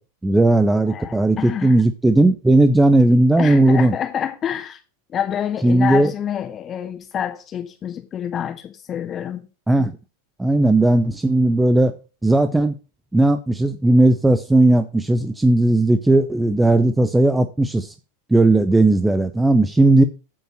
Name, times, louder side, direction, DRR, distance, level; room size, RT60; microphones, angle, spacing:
voice 1, 0.2-3.9 5.6-6.1 9.7-10.0 10.4-11.9 12.2-12.7 13.1-17.9 18.3-20.0, right 2 dB, 5° right, 0.6 m, -16 dB
voice 2, 0.9-1.7 3.4-4.8 5.1-9.5, left 9 dB, 25° left, 2.0 m, -27 dB
8.7 x 5.3 x 6.0 m
figure-of-eight pair, 90°, 0 cm